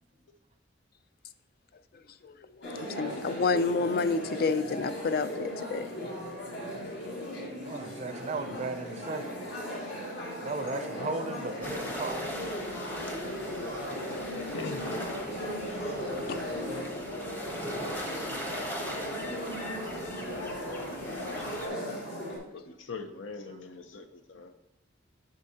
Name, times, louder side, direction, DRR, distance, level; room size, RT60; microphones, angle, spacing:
sound 1, 2.6-22.4, equal, 65° left, 2.2 m, -37 dB
voice 1, 2.8-5.9 16.3-16.4, left 4 dB, 50° left, 13 dB, 0.3 m, -29 dB
voice 2, 7.6-9.5 10.4-12.3 18.3-18.5, right 3 dB, 35° right, 9 dB, 0.4 m, -37 dB
sound 2, 11.6-21.7, equal, 10° left, 0.8 m, -41 dB
voice 3, 14.4-14.9 20.4-21.7 22.5-24.5, left 4 dB, 85° left, 8 dB, 0.7 m, -43 dB
8.2 x 6.5 x 2.8 m, 0.84 s
head